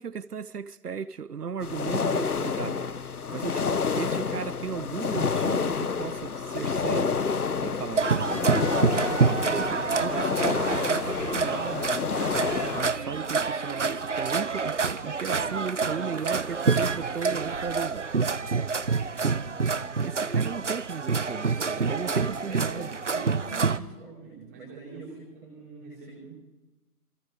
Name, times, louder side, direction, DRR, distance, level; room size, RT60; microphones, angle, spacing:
voice 1, 0.0-2.9 3.3-7.2 7.6-8.4 9.1-11.9 12.7-14.8 15.0-18.1 19.2-19.6 19.9-23.0, right 6 dB, 85° right, 0.9 m, -36 dB
sound 1, 1.6-12.9, left 5 dB, 70° left, 1.2 m, -29 dB
sound 2, 5.8-17.3, right 2 dB, 30° right, 3.9 m, -52 dB
sound 3, 8.0-23.8, right 4 dB, 50° right, 0.7 m, -27 dB
voice 2, 19.1-19.9 21.3-26.3, right 4 dB, 10° right, 5.3 m, -44 dB
27.5 x 24.0 x 4.9 m
figure-of-eight pair, 180°, 46 cm